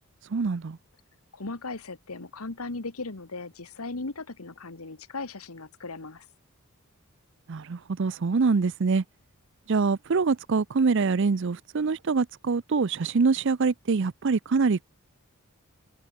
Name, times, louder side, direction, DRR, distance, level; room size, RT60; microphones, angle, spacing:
voice 1, 0.3-0.8 7.5-9.0 9.7-14.8, right 4 dB, 55° right, 0.5 m, -24 dB
voice 2, 1.3-6.3, left 3 dB, 85° left, 1.6 m, -37 dB
head